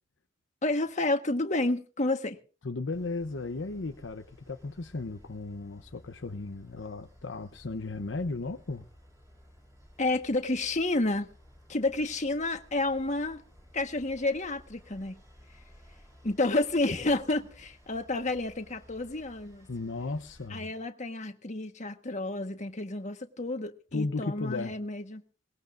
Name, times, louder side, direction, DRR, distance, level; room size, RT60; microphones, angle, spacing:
voice 1, 0.6-2.4 10.0-11.3 11.7-13.4 13.7-15.2 16.2-19.7 20.5-25.2, left 2 dB, 40° left, 1.4 m, -30 dB
voice 2, 2.6-8.8 19.7-20.7 23.9-24.8, left 3 dB, 70° left, 0.8 m, -35 dB
sound 1, 2.9-20.5, equal, 20° right, 6.7 m, -56 dB
22.0 x 19.5 x 2.6 m
head